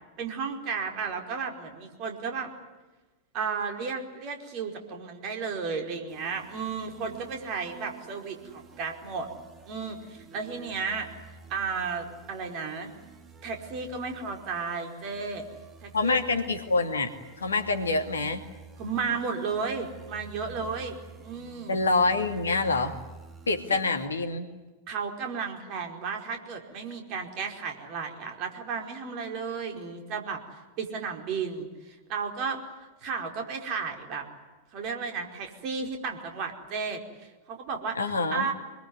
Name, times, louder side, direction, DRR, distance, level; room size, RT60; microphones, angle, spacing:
voice 1, 0.2-2.5 3.3-9.3 9.6-11.1 11.5-12.9 13.4-15.5 15.8-16.2 18.8-21.8 23.7-23.8 24.9-30.4 30.8-32.6 33.0-34.3 34.7-38.0 38.3-38.5, right 5 dB, 40° right, 4 dB, 4.9 m, -33 dB
sound 1, 6.1-24.1, right 5 dB, 20° right, 2.9 m, -50 dB
voice 2, 15.9-17.1 17.4-18.4 21.7-22.9 23.5-24.5 38.0-38.5, left 3 dB, 75° left, 6 dB, 2.5 m, -26 dB
25.5 x 22.5 x 9.7 m, 1.2 s
figure-of-eight pair, 90°, 0 cm